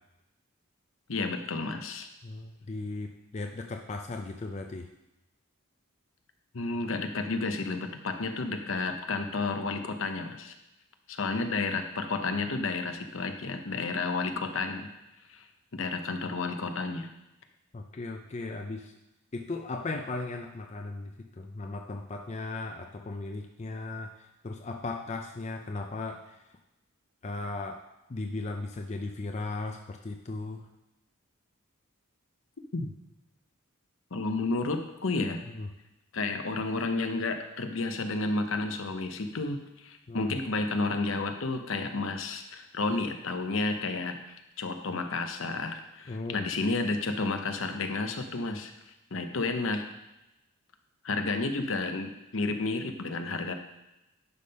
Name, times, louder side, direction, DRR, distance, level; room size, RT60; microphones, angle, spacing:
voice 1, 1.1-2.1 6.5-10.5 11.1-14.9 15.3-15.4 15.7-17.1 32.7-32.9 34.1-35.4 36.1-48.7 49.1-49.9 51.0-53.5, left 3 dB, 65° left, 6 dB, 0.8 m, -31 dB
voice 2, 2.2-4.9 17.7-19.0 19.3-26.4 27.2-27.8 28.1-30.7 35.5-35.7 40.1-40.4 46.1-46.5, left 3 dB, 30° left, 4 dB, 0.4 m, -37 dB
11.0 x 3.7 x 5.3 m, 0.94 s
head